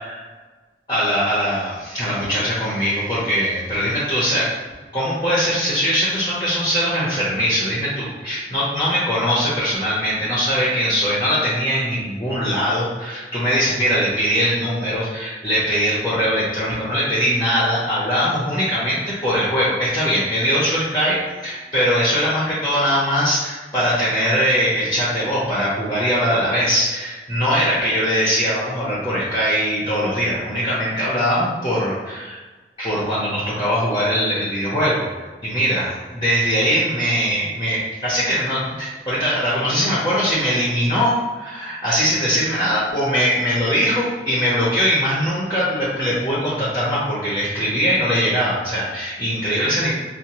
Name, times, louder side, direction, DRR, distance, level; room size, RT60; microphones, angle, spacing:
voice 1, 0.9-4.5 4.9-32.4 32.8-35.1 35.4-49.9, equal, 25° left, -8 dB, 0.7 m, -21 dB
4.8 x 2.1 x 2.9 m, 1.3 s
head